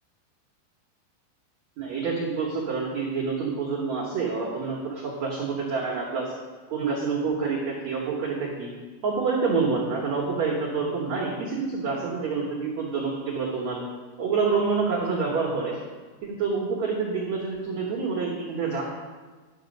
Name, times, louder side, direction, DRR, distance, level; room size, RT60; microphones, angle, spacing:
voice 1, 1.8-6.3 6.7-8.7 9.0-13.8 14.2-15.8 16.2-18.8, right 4 dB, 85° right, -3 dB, 1.5 m, -27 dB
11.0 x 6.8 x 5.2 m, 1.4 s
omnidirectional pair, 5.0 m